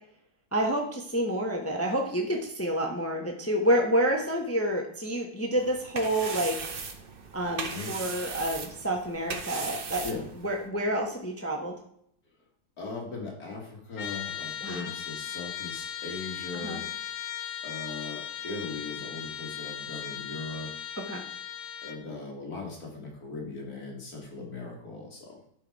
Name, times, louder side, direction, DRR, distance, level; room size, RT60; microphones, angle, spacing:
voice 1, 0.5-6.7 7.3-10.0 10.4-11.7 14.6-14.9 16.5-16.8 21.0-21.2, right 1 dB, 15° left, 2 dB, 0.6 m, -28 dB
sound 1, 5.6-10.7, right 5 dB, 65° right, 0.5 m, -38 dB
voice 2, 12.8-16.9 17.6-20.8 21.8-25.4, left 3 dB, 45° left, 0 dB, 2.4 m, -39 dB
Trumpet, 14.0-22.0, left 9 dB, 80° left, 1.6 m, -38 dB
11.0 x 4.7 x 4.7 m, 0.68 s
omnidirectional pair, 2.2 m